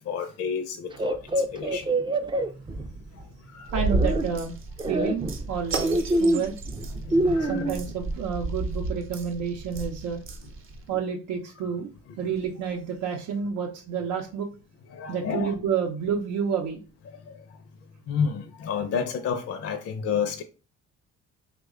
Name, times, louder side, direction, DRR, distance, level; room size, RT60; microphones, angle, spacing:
voice 1, 0.0-1.9 3.2-3.7 7.0-7.7 14.9-15.5 17.1-17.4 18.1-20.4, left 6 dB, 55° left, 0.5 m, -31 dB
sound 1, 0.9-3.2 3.7-4.3 4.8-7.9, right 1 dB, 15° right, 0.3 m, -26 dB
sound 2, 3.7-10.9, right 2 dB, 45° right, 0.7 m, -32 dB
voice 2, 3.7-4.6 4.9-6.6 7.3-10.2 10.9-11.9 12.2-14.5 15.1-16.8, right 6 dB, 85° right, 0.6 m, -29 dB
3.1 x 2.2 x 3.6 m
cardioid pair, 90°, 30 cm